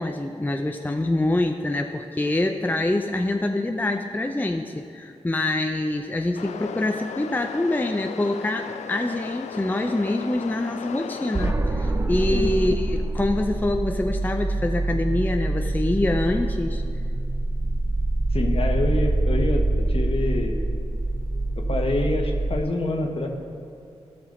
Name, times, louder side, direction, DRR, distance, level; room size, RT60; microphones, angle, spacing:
voice 1, 0.0-16.8, left 2 dB, 15° left, 5 dB, 0.5 m, -25 dB
sound 1, 6.3-11.5, left 7 dB, 85° left, 0.4 m, -36 dB
sound 2, 11.3-22.6, right 2 dB, 25° right, 0.7 m, -25 dB
voice 2, 18.3-20.6 21.6-23.3, left 2 dB, 55° left, 3 dB, 1.3 m, -26 dB
13.5 x 6.1 x 3.9 m, 2.6 s
cardioid pair, 45°, 12 cm